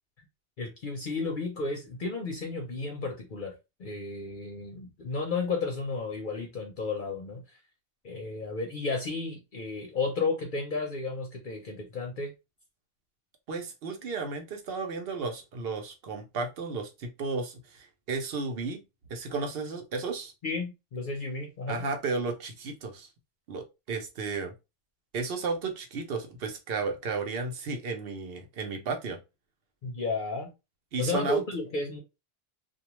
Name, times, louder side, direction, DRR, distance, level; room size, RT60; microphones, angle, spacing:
voice 1, 0.6-7.6 8.0-12.3 20.4-21.8 29.8-30.5 31.0-32.0, left 3 dB, 60° left, 0.7 m, -33 dB
voice 2, 13.5-18.8 19.1-20.3 21.7-23.1 23.5-24.5 25.1-29.2 30.9-31.4, right 4 dB, 70° right, 0.9 m, -33 dB
2.3 x 2.2 x 2.9 m
omnidirectional pair, 1.1 m